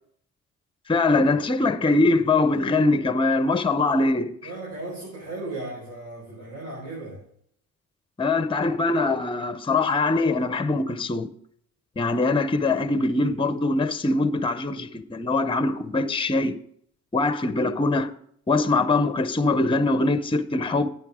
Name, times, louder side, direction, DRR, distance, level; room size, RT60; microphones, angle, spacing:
voice 1, 0.9-4.5 8.2-11.3 12.0-16.6 17.1-18.1 18.5-20.9, left 3 dB, 15° left, 0.7 m, -22 dB
voice 2, 4.4-7.2, right 2 dB, 65° right, 4.9 m, -36 dB
11.0 x 9.5 x 3.6 m
cardioid pair, 90°, 30 cm